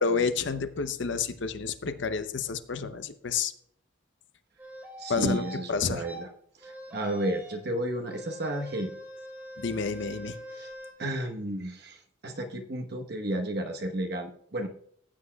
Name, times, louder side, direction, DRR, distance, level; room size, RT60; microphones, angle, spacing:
voice 1, 0.0-3.5 5.1-5.4 5.7-6.0 9.6-10.4, left 5 dB, 55° left, 11 dB, 0.6 m, -29 dB
sound 1, 4.6-5.6 6.0-6.2 6.6-7.7 8.1-10.9, equal, 10° right, 2.3 m, -43 dB
voice 2, 5.0-6.3 6.6-8.9 10.5-10.7 11.0-14.7, right 1 dB, 50° right, 3 dB, 1.1 m, -32 dB
15.0 x 8.2 x 2.3 m, 0.65 s
head